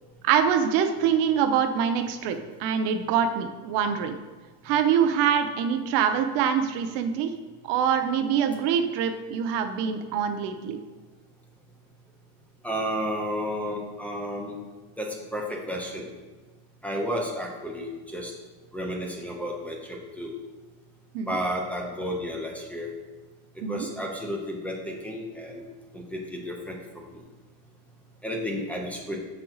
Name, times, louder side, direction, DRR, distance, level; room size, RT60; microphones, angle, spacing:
voice 1, 0.2-4.1 4.6-7.3 7.6-10.8 21.1-21.4 23.6-23.9, right 8 dB, 85° right, 8 dB, 0.7 m, -24 dB
voice 2, 12.6-14.6 15.0-16.0 16.8-18.3 18.7-20.3 21.3-22.9 23.7-25.6 25.9-26.8 28.2-29.2, equal, 5° left, -1 dB, 0.9 m, -32 dB
6.9 x 4.5 x 3.9 m, 1.3 s
cardioid pair, 140°, 40 cm